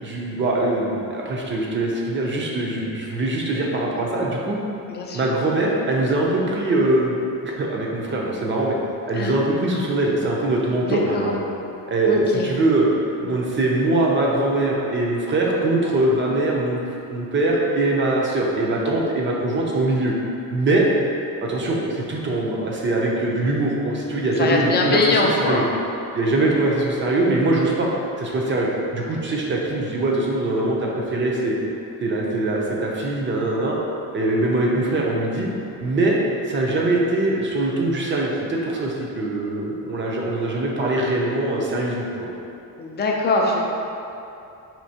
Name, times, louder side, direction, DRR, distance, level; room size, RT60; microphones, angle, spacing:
voice 1, 0.0-4.6 5.1-8.8 9.1-11.4 11.9-12.8 13.2-16.8 17.1-20.1 20.5-20.8 21.4-25.6 26.1-27.9 28.2-31.6 32.0-33.8 34.1-35.5 35.8-36.2 36.4-42.3, right 2 dB, 35° right, -2 dB, 0.5 m, -22 dB
voice 2, 4.9-5.3 9.1-9.3 10.8-11.3 12.1-12.5 24.4-25.7 42.8-43.6, left 2 dB, 30° left, 0 dB, 0.4 m, -22 dB
4.4 x 2.8 x 2.7 m, 2.7 s
cardioid pair, 145°, 36 cm